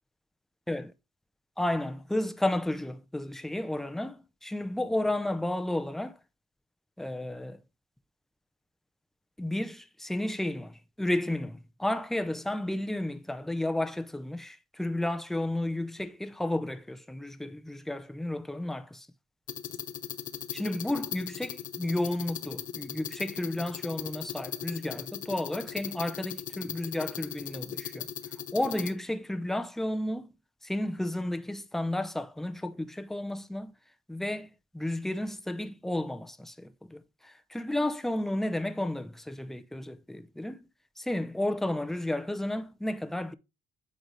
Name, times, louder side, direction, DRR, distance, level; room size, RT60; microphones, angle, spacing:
voice 1, 1.6-6.2 7.0-7.6 9.4-19.1 20.5-28.1 28.5-30.3 30.6-33.7 34.1-40.6 41.0-43.3, left 1 dB, ahead, 0.5 m, -32 dB
sound 1, 19.5-28.9, left 9 dB, 50° left, 0.8 m, -39 dB
8.7 x 3.9 x 3.2 m
cardioid pair, 110°, 17 cm